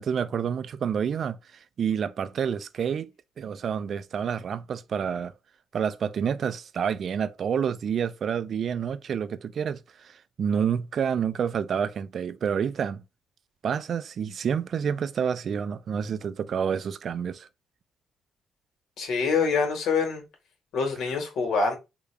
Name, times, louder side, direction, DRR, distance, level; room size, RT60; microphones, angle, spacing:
voice 1, 0.0-3.1 3.4-5.3 5.7-13.0 13.6-17.5, right 7 dB, 55° right, 0.3 m, -28 dB
voice 2, 19.0-20.2 20.7-21.7, left 5 dB, 80° left, 1.3 m, -25 dB
3.5 x 2.3 x 3.2 m
cardioid pair, 90°, 0 cm